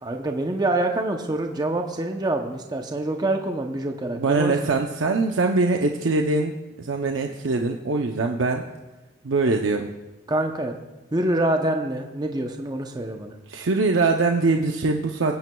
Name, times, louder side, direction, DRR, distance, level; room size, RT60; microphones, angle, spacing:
voice 1, 0.0-4.7 10.3-10.7 11.1-13.3, right 1 dB, 20° right, 4 dB, 0.7 m, -26 dB
voice 2, 4.2-8.7 9.2-9.9 13.5-15.4, right 3 dB, 75° right, 3 dB, 0.6 m, -23 dB
23.0 x 9.1 x 2.3 m, 1.1 s
head